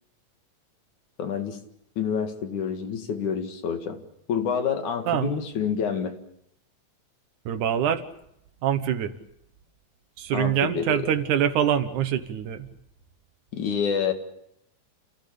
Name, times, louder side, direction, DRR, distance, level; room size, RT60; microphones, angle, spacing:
voice 1, 1.2-1.6 2.0-4.0 4.3-6.2 10.3-11.1 13.5-14.1, left 7 dB, 80° left, 6 dB, 3.5 m, -28 dB
voice 2, 7.5-8.0 8.6-9.1 10.2-12.7, right 9 dB, 80° right, 10 dB, 2.7 m, -24 dB
29.0 x 16.0 x 8.6 m, 0.78 s
omnidirectional pair, 3.4 m